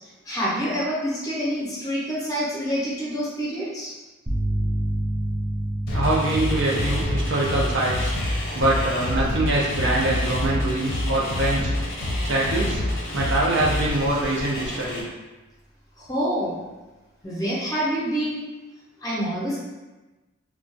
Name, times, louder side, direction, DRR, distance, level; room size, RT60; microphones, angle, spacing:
voice 1, 0.2-3.9 16.0-16.6 17.2-18.4 19.0-19.6, equal, 15° left, -7 dB, 0.8 m, -27 dB
sound 1, 4.3-12.0, right 1 dB, 10° right, 0.4 m, -31 dB
sound 2, 5.9-15.0, left 1 dB, 50° left, 0.6 m, -27 dB
voice 2, 5.9-8.1 8.5-11.7 12.2-12.8 13.1-15.0, right 2 dB, 60° right, -4 dB, 0.6 m, -24 dB
2.4 x 2.2 x 3.8 m, 1.1 s
head